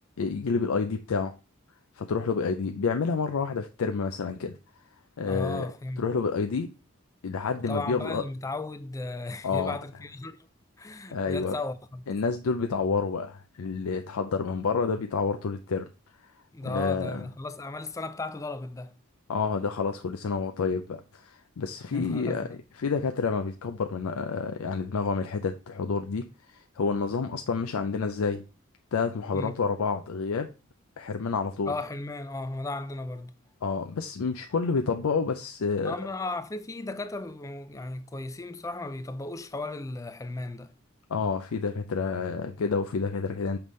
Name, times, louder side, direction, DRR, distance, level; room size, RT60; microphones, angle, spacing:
voice 1, 0.2-1.3 2.0-4.6 5.2-5.7 6.0-6.7 7.2-8.2 9.4-9.8 11.1-11.5 12.1-15.9 16.6-17.2 19.3-22.5 22.7-28.4 28.9-30.5 31.0-31.7 33.6-35.9 41.1-43.6, left 5 dB, 85° left, 0.5 m, -29 dB
voice 2, 5.3-6.1 7.7-10.4 10.8-12.1 16.5-18.9 21.9-22.6 29.3-29.6 31.7-33.3 35.8-40.7, left 2 dB, 15° left, 0.3 m, -35 dB
5.8 x 5.2 x 3.1 m
head